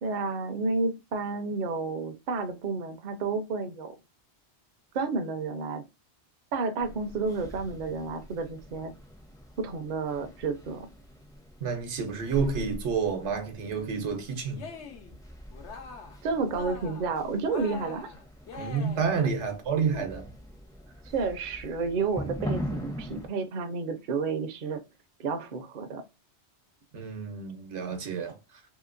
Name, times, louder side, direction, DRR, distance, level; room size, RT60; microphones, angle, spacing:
voice 1, 0.0-3.9 4.9-5.8 6.5-8.9 9.6-10.9 16.2-18.1 19.9-20.1 21.1-24.8 25.2-26.0, right 4 dB, 55° right, 0.6 m, -31 dB
sound 1, 6.8-23.3, equal, 5° left, 0.4 m, -42 dB
voice 2, 11.6-14.7 18.6-20.3 26.9-28.4, right 5 dB, 85° right, 1.1 m, -29 dB
Cheering, 14.5-15.1 15.5-16.2 16.5-17.1 17.5-19.2, left 5 dB, 85° left, 1.0 m, -43 dB
2.9 x 2.8 x 2.5 m
omnidirectional pair, 1.1 m